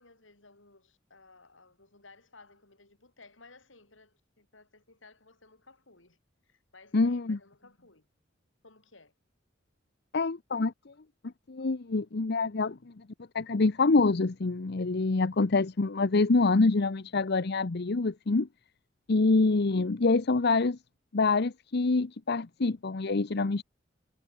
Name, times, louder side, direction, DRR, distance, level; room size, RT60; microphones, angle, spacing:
voice 1, 0.0-6.2 6.4-8.1 8.6-9.1, left 3 dB, 85° left, 7.4 m, -57 dB
voice 2, 6.9-7.4 10.1-10.9 11.5-13.0 13.3-18.5 19.1-20.8 21.1-23.6, left 3 dB, 60° left, 0.8 m, -26 dB
head